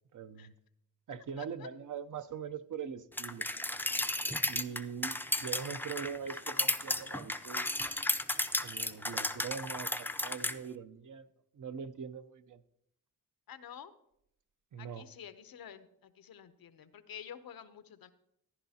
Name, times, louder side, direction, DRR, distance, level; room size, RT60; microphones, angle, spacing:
voice 1, 0.1-0.5 1.1-3.5 4.5-7.7 8.6-11.3 11.5-12.6 14.7-15.1, right 7 dB, 60° right, 0.7 m, -42 dB
sound 1, 3.2-10.6, left 1 dB, 5° left, 0.5 m, -34 dB
voice 2, 13.5-13.9 14.8-15.9 16.2-18.1, left 9 dB, 80° left, 0.8 m, -49 dB
14.5 x 11.0 x 2.8 m
cardioid pair, 75°, 35 cm